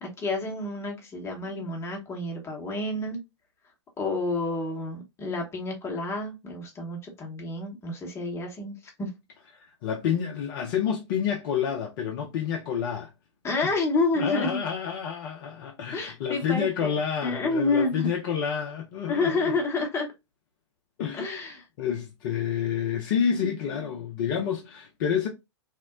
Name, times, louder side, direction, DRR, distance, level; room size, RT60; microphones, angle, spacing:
voice 1, 0.0-3.2 4.0-9.1 13.4-14.6 15.9-16.9 17.2-18.1 19.1-20.1 21.1-21.7, left 3 dB, 15° left, 0.8 m, -29 dB
voice 2, 9.5-13.1 13.6-13.7 14.2-19.5 21.0-25.3, left 8 dB, 45° left, 0.5 m, -29 dB
2.8 x 2.0 x 2.3 m
figure-of-eight pair, 105°, 15 cm